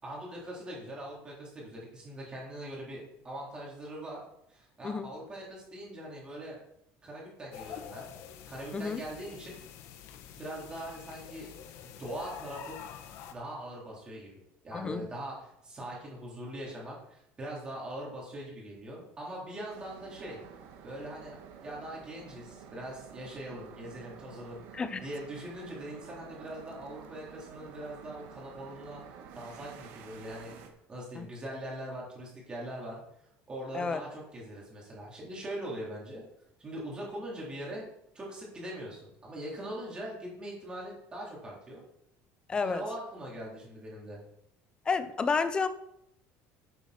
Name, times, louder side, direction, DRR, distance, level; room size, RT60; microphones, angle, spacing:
voice 1, 0.0-4.2 4.5-6.6 7.0-8.1 8.5-9.6 10.4-11.5 11.8-12.8 13.1-20.4 20.8-21.4 21.6-29.0 29.3-30.6 30.9-33.0 33.5-36.2 36.6-37.8 38.1-41.8 42.6-44.2, right 1 dB, 15° right, 4.0 m, -42 dB
sound 1, 7.5-13.3, left 9 dB, 60° left, 1.2 m, -47 dB
voice 2, 14.7-15.1 24.7-25.0 31.2-31.3 33.7-34.0 42.5-42.8 44.9-45.7, left 4 dB, 15° left, 0.6 m, -30 dB
sound 2, 19.7-30.7, right 7 dB, 80° right, 1.8 m, -50 dB
11.5 x 8.5 x 4.4 m
cardioid pair, 175°, 5 cm